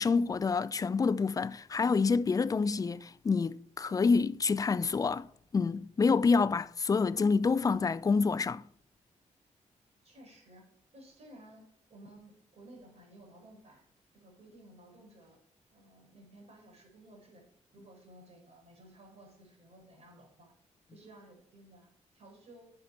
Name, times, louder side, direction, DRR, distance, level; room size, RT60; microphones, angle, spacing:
voice 1, 0.0-5.3 5.5-8.6, left 4 dB, 30° left, 0.4 m, -27 dB
voice 2, 10.0-10.6 10.9-13.8 14.1-15.4 15.7-17.4 17.7-20.5 20.9-21.9 22.1-22.7, right 1 dB, 55° right, 4.5 m, -55 dB
10.5 x 6.6 x 4.4 m
cardioid pair, 105°, 13 cm